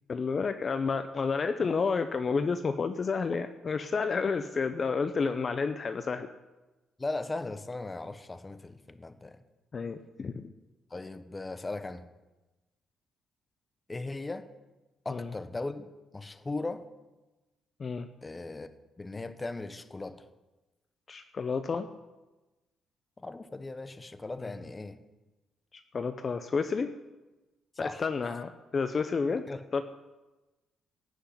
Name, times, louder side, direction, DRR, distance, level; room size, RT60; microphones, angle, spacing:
voice 1, 0.1-6.3 9.7-10.5 15.1-15.3 17.8-18.1 21.1-21.9 24.4-24.5 25.7-26.9 27.8-29.4 29.7-29.8, left 5 dB, 40° left, 9 dB, 0.8 m, -30 dB
voice 2, 7.0-9.4 10.9-12.1 13.9-14.5 15.0-16.9 18.2-18.7 19.0-20.3 23.2-25.0 27.8-28.1 29.5-29.6, left 2 dB, 20° left, 11 dB, 1.0 m, -38 dB
15.5 x 6.5 x 9.9 m, 1.1 s
cardioid pair, 90°, 0 cm